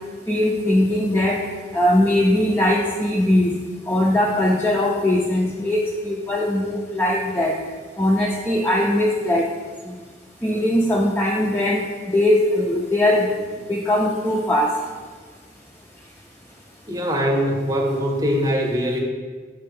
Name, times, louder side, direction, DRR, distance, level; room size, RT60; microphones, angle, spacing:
voice 1, 0.3-1.4 1.7-3.6 3.9-7.6 8.0-9.5 9.9-10.0 10.4-13.3 13.7-14.7, left 1 dB, 10° left, -2 dB, 0.4 m, -20 dB
voice 2, 16.9-19.0, equal, 20° right, 1 dB, 0.8 m, -22 dB
6.6 x 3.5 x 5.3 m, 1.5 s
head